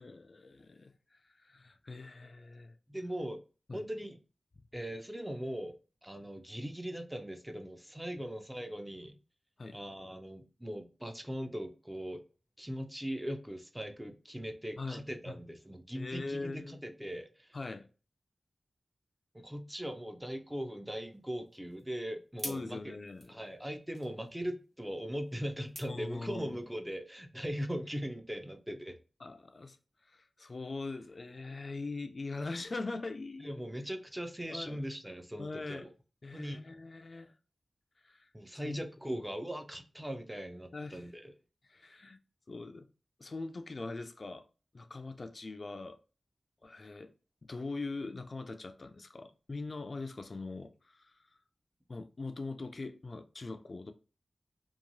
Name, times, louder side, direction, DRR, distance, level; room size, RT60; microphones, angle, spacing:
voice 1, 0.0-2.8 3.7-3.9 9.6-9.8 14.8-15.4 15.9-16.8 17.5-17.9 22.4-23.4 25.9-26.6 29.2-29.8 30.0-33.5 34.5-34.8 35.4-35.9 36.2-37.3 38.0-38.3 38.6-38.8 40.7-41.1 41.6-42.2 42.5-42.9 43.2-44.5 44.7-46.0 46.6-47.1 47.4-51.3 51.9-53.9, left 3 dB, 55° left, 0.3 m, -42 dB
voice 2, 2.9-3.4 3.7-4.2 4.7-5.7 6.0-9.2 9.7-12.2 12.6-17.6 19.3-22.9 23.3-29.0 33.4-35.9 36.3-36.7 38.3-41.3, equal, 10° right, 0.5 m, -40 dB
sound 1, 21.1-26.7, right 1 dB, 65° right, 0.9 m, -50 dB
2.8 x 2.3 x 2.6 m
cardioid pair, 50°, 0 cm